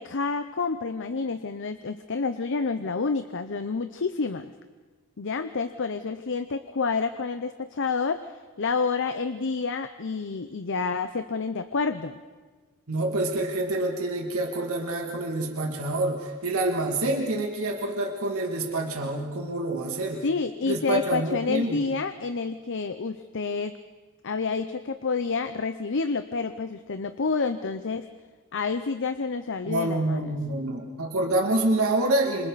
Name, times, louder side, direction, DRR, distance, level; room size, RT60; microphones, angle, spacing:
voice 1, 0.0-4.5 5.2-8.3 8.6-12.2 20.2-23.7 24.2-28.0 28.5-30.3, left 4 dB, 60° left, 9 dB, 0.8 m, -29 dB
voice 2, 12.9-20.2 20.7-21.8 29.7-32.5, right 2 dB, 80° right, 1 dB, 2.5 m, -27 dB
27.0 x 27.0 x 4.2 m, 1.4 s
head